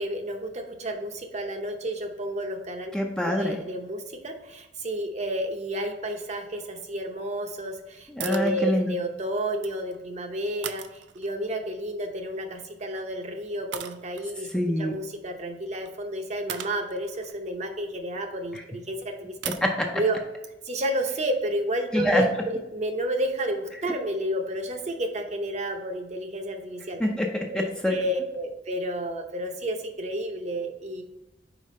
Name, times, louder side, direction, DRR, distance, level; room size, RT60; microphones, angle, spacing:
voice 1, 0.0-2.9 3.2-14.5 14.8-19.5 19.9-20.2 20.6-27.0 27.5-31.0, right 1 dB, 40° right, 4 dB, 0.7 m, -31 dB
voice 2, 2.9-3.6 8.1-8.9 14.5-14.9 18.5-18.6 19.4-19.9 21.9-22.3 27.0-28.0, left 1 dB, 5° left, 1 dB, 0.5 m, -25 dB
sound 1, 8.2-8.6 9.4-10.0 10.6-11.5 12.8-13.0 13.7-14.3 15.8-15.9 16.5-18.6 19.4-19.7, right 10 dB, 75° right, 0.4 m, -38 dB
5.0 x 4.5 x 4.2 m, 0.94 s
head